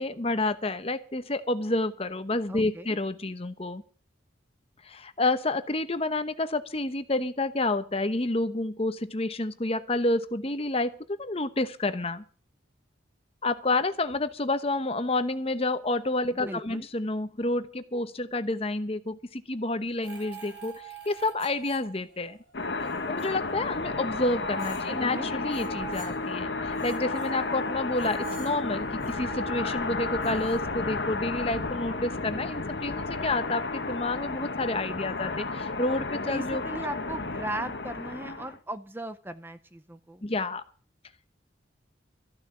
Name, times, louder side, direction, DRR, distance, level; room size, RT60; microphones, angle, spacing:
voice 1, 0.0-3.8 4.8-10.9 11.2-12.2 13.4-22.4 23.1-36.6 38.2-38.4 40.2-40.6, left 2 dB, 30° left, 11 dB, 0.9 m, -29 dB
voice 2, 2.5-2.9 16.4-16.9 24.9-25.3 36.1-40.2, right 1 dB, 10° right, 11 dB, 0.6 m, -38 dB
sound 1, 20.0-22.3 22.6-23.5 24.1-26.2 26.6-30.6, right 7 dB, 70° right, 7.6 m, -46 dB
sound 2, 22.5-38.6, left 3 dB, 60° left, 1.4 m, -32 dB
Explosion, 28.7-34.7 35.1-35.2, equal, 45° right, 5.4 m, -56 dB
14.5 x 6.5 x 9.7 m, 0.41 s
head